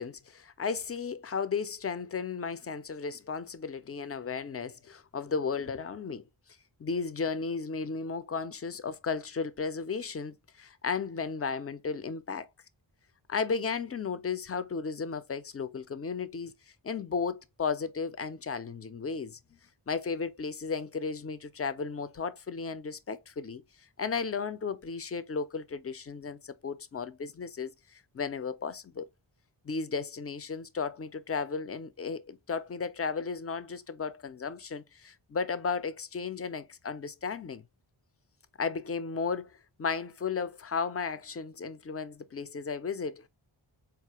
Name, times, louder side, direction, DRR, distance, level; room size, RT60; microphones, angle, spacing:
voice 1, 0.0-6.2 6.8-12.5 13.3-16.5 16.8-19.4 19.9-23.6 24.0-29.1 29.6-37.6 38.6-43.3, left 5 dB, 30° left, 0.4 m, -34 dB
4.0 x 2.4 x 2.8 m
wide cardioid pair, 65°, 50 cm